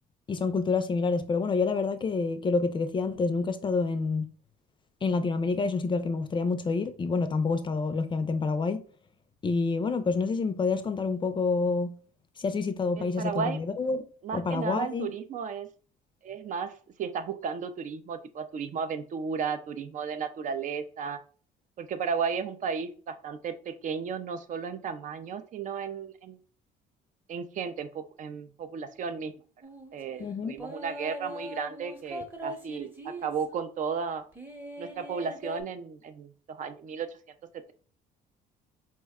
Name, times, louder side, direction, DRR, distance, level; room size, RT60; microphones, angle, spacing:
voice 1, 0.3-4.3 5.0-8.8 9.4-11.9 12.4-14.0 14.3-15.1 30.2-30.5, left 4 dB, 30° left, 0.4 m, -28 dB
voice 2, 13.0-13.6 14.2-15.7 16.2-16.7 17.0-21.2 21.8-26.4 27.3-29.3 29.9-34.2 34.8-37.1, right 6 dB, 50° right, 0.4 m, -34 dB
sound 1, 29.6-29.9 30.6-33.6 34.3-35.6, equal, 10° right, 0.8 m, -41 dB
4.2 x 2.1 x 3.5 m
cardioid pair, 110°, 17 cm